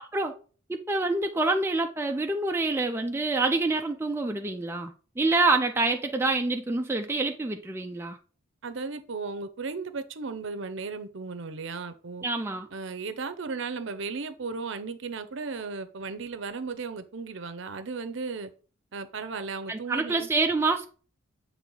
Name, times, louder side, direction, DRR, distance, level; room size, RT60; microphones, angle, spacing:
voice 1, 0.7-8.2 12.2-12.7 19.7-20.9, right 3 dB, 10° right, 0.3 m, -27 dB
voice 2, 8.6-12.2 12.7-18.5 18.9-20.3, right 4 dB, 65° right, 0.6 m, -35 dB
7.4 x 3.3 x 3.9 m
head